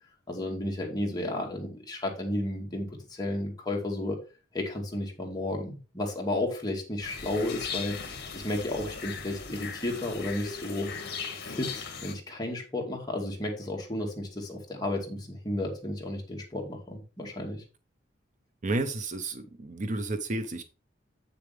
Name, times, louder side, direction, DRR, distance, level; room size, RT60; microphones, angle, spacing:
voice 1, 0.3-4.2 4.5-10.9 11.4-17.6, left 1 dB, 20° left, 0 dB, 2.2 m, -33 dB
sound 1, 7.0-12.2, left 5 dB, 60° left, 1.8 m, -38 dB
voice 2, 18.6-20.6, right 2 dB, 40° right, 9 dB, 0.7 m, -31 dB
8.0 x 6.8 x 3.4 m, 0.32 s
head